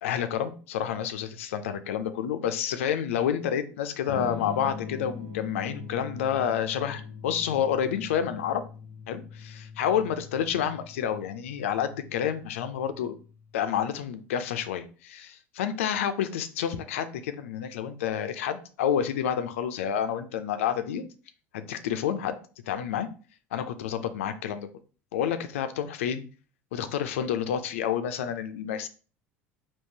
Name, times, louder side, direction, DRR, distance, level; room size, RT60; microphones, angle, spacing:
voice 1, 0.0-8.6 9.1-9.2 9.8-13.2 13.5-21.0 21.5-22.4 22.7-23.1 23.5-24.7 25.1-26.2 26.7-28.9, left 9 dB, 75° left, 10 dB, 0.4 m, -29 dB
Electric guitar / Strum, 4.1-13.8, left 6 dB, 30° right, 1.3 m, -42 dB
3.6 x 2.7 x 2.7 m, 0.37 s
hypercardioid pair, 75°, 7 cm